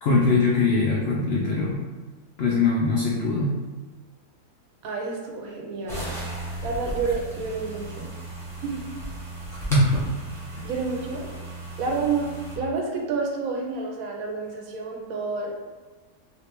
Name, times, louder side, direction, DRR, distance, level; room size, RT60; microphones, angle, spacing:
voice 1, 0.0-1.8 2.4-3.6 9.5-9.9, left 3 dB, 85° left, -3 dB, 0.5 m, -22 dB
voice 2, 4.8-6.1 6.6-8.1 8.6-9.0 10.6-11.3 11.8-15.7, right 4 dB, 70° right, 0 dB, 1.0 m, -29 dB
sound 1, 5.9-12.6, right 1 dB, ahead, 0.7 m, -35 dB
3.3 x 2.8 x 2.9 m, 1.3 s
omnidirectional pair, 1.6 m